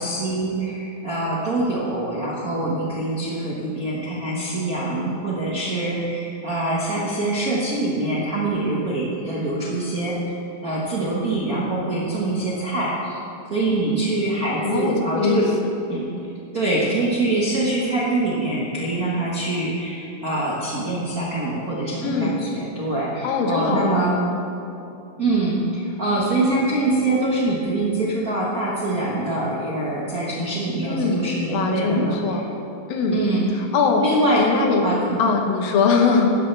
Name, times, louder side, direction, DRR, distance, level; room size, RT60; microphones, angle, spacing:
voice 1, 0.0-13.2 13.5-15.5 15.9-16.1 16.5-24.2 25.2-32.4 33.1-33.7 34.0-34.4 34.8-35.2, right 2 dB, 55° right, -6 dB, 1.0 m, -24 dB
voice 2, 14.6-15.4 22.0-22.3 23.2-24.4 30.8-32.4 32.9-33.2 33.7-34.1 34.4-34.9 35.2-36.3, left 5 dB, 90° left, 3 dB, 3.0 m, -21 dB
16.5 x 11.5 x 3.4 m, 2.8 s
omnidirectional pair, 4.0 m